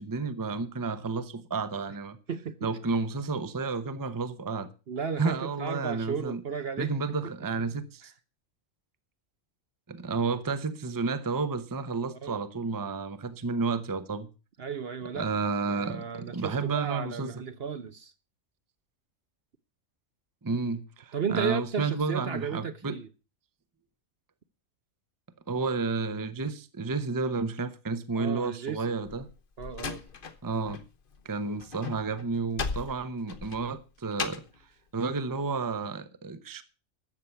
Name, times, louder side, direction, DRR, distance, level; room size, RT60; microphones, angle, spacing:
voice 1, 0.0-2.2 2.6-4.7 5.2-6.4 6.8-8.0 9.9-14.3 15.1-17.4 20.4-23.0 25.5-29.3 30.4-30.8 31.2-34.4 34.9-36.6, right 4 dB, 20° right, 0.8 m, -31 dB
voice 2, 2.3-2.7 4.9-6.9 7.2-7.3 12.2-12.4 14.6-18.1 21.1-23.1 28.1-29.0 29.6-30.0 31.4-31.6, right 6 dB, 50° right, 1.0 m, -34 dB
Slam, 29.0-30.9 31.1-34.6, left 5 dB, 45° left, 1.1 m, -37 dB
13.5 x 8.3 x 5.8 m
omnidirectional pair, 1.4 m